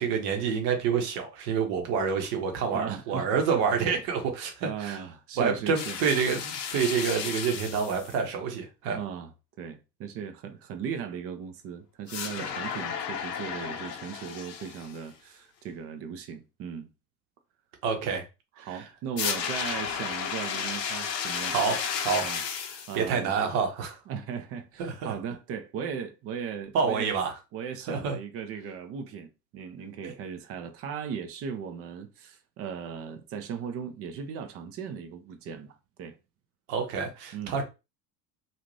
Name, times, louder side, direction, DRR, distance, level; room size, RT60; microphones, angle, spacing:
voice 1, 0.0-5.0 5.4-9.0 12.4-12.5 17.8-18.2 18.6-18.9 21.5-22.3 22.9-24.0 24.8-25.1 26.7-27.3 27.9-28.2 30.0-30.1 36.7-37.6, right 6 dB, 55° right, 0.9 m, -28 dB
voice 2, 2.7-3.4 4.6-6.0 8.9-9.3 9.6-16.9 18.6-21.5 22.2-22.4 22.9-23.3 24.1-27.1 27.5-36.1 37.3-37.5, right 7 dB, 30° right, 0.4 m, -37 dB
sound 1, 5.7-8.2 12.1-15.0 19.2-23.0, left 7 dB, 75° left, 0.7 m, -33 dB
2.6 x 2.4 x 3.1 m
figure-of-eight pair, 70°, 50 cm